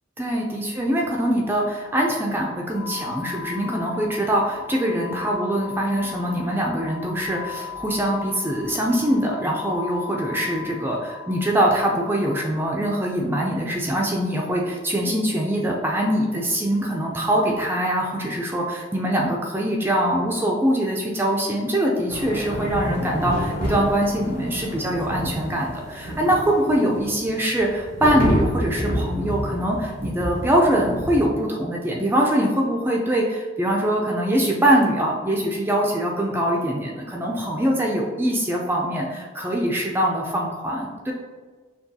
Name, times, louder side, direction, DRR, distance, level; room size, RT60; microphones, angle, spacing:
voice 1, 0.2-41.1, right 1 dB, 10° right, -1 dB, 0.3 m, -23 dB
sound 1, 2.7-11.8, left 9 dB, 85° left, 0.4 m, -38 dB
sound 2, 22.1-31.3, equal, 50° left, 1.0 m, -29 dB
5.9 x 2.2 x 2.7 m, 1.4 s
head